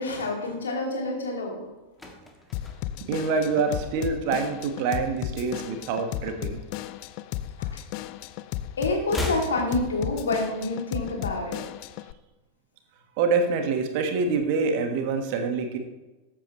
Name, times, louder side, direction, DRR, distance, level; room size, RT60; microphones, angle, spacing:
voice 1, 0.0-1.7 7.6-7.8 8.8-11.6, left 2 dB, 65° left, 0 dB, 2.5 m, -28 dB
sound 1, 1.6-4.3 4.6-4.9 5.1-6.6 6.9-8.2 8.5-10.6 10.9-11.0, left 2 dB, 10° left, 1.7 m, -39 dB
Drum kit / Drum, 2.5-12.1, left 12 dB, 45° left, 0.4 m, -35 dB
voice 2, 3.1-6.6 13.2-15.8, right 4 dB, 45° right, 6 dB, 1.5 m, -26 dB
13.5 x 8.7 x 3.1 m, 1.1 s
figure-of-eight pair, 90°, 0 cm